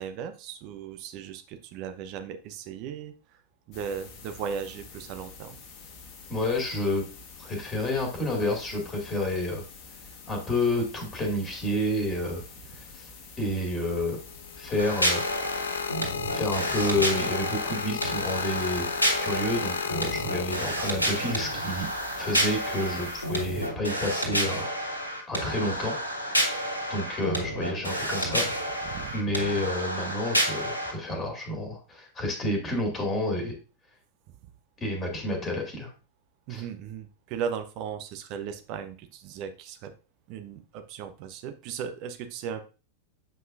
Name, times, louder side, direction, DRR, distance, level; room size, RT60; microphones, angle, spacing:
voice 1, 0.0-3.1 3.7-5.6 28.9-29.1 36.5-39.9 40.3-42.6, right 7 dB, 40° right, 8 dB, 0.9 m, -37 dB
sound 1, 3.7-23.7, left 4 dB, 40° left, 1.4 m, -47 dB
voice 2, 6.3-7.0 7.4-9.6 10.3-12.4 12.9-13.1 13.4-14.2 14.6-15.2 16.3-18.9 19.2-21.9 22.2-24.9 25.3-25.9 26.9-28.4 29.1-33.5 34.8-35.9 36.5-36.6, left 1 dB, 15° left, 2 dB, 2.3 m, -29 dB
sound 2, 14.3-21.1 21.9-22.2, left 7 dB, 65° left, 0.4 m, -33 dB
sound 3, 14.8-30.9, equal, 85° left, 1.7 m, -30 dB
7.7 x 5.4 x 2.6 m, 0.33 s
figure-of-eight pair, 90°, 0 cm